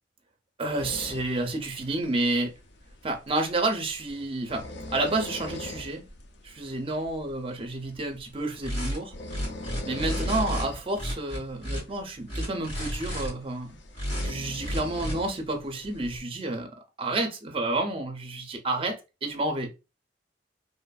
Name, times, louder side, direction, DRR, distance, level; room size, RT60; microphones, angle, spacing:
voice 1, 0.6-2.5 3.0-4.7 4.9-6.0 6.4-9.1 9.9-13.8 14.2-16.7 17.0-19.7, right 2 dB, 30° right, 0.5 m, -30 dB
sound 1, 0.8-16.2, left 1 dB, 65° left, 0.4 m, -42 dB
sound 2, 8.6-9.0 9.3-10.6 10.9-11.8 12.3-13.3 13.9-14.3 14.6-15.1, equal, 40° left, 1.5 m, -31 dB
2.5 x 2.5 x 2.3 m
head